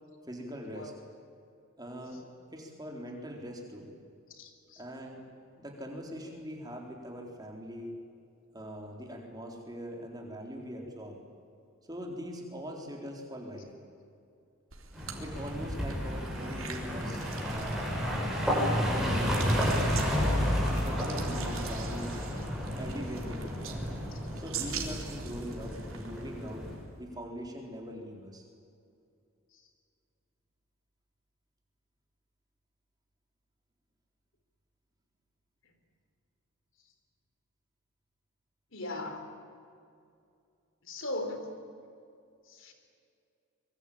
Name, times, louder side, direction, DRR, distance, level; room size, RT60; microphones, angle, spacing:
voice 1, 0.3-0.9 1.8-2.2 2.5-3.9 4.8-5.2 5.5-8.0 8.5-11.2 11.9-13.7 15.2-17.9 18.8-20.2 20.8-22.2 22.8-23.6 24.4-26.7 27.0-28.4, equal, 20° right, 1 dB, 4.1 m, -42 dB
voice 2, 4.4-4.8 24.1-24.2 38.7-39.3 40.8-41.5 42.5-42.7, left 1 dB, 65° left, 6 dB, 3.7 m, -38 dB
sound 1, 14.7-26.9, right 6 dB, 75° right, 3.6 m, -44 dB
sound 2, 14.9-26.8, equal, ahead, 7.4 m, -31 dB
25.5 x 23.0 x 8.9 m, 2.5 s
head